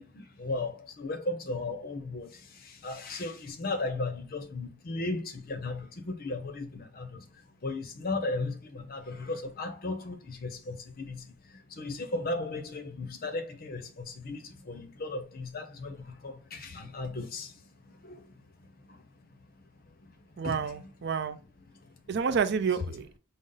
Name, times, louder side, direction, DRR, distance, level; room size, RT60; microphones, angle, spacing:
voice 1, 0.0-18.3 18.6-19.0 19.5-19.6 20.0-20.9 21.7-22.0, left 2 dB, 45° left, 0.6 m, -36 dB
voice 2, 20.4-21.4 22.1-23.2, right 6 dB, 50° right, 0.4 m, -29 dB
5.2 x 2.0 x 3.8 m
head